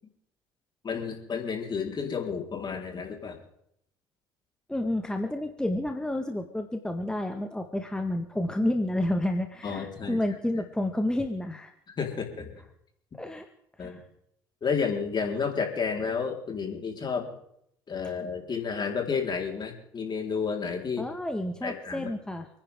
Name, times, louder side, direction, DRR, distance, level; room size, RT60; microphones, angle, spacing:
voice 1, 0.8-3.4 9.6-10.2 12.0-12.5 13.8-14.0 14.6-17.3 17.9-21.1 21.6-22.1, left 5 dB, 40° left, 2 dB, 4.3 m, -31 dB
voice 2, 4.7-11.7 13.1-13.5 13.8-14.0 21.0-22.5, left 1 dB, 5° left, 5 dB, 1.7 m, -30 dB
30.0 x 10.5 x 3.7 m, 0.72 s
hypercardioid pair, 55°, 12 cm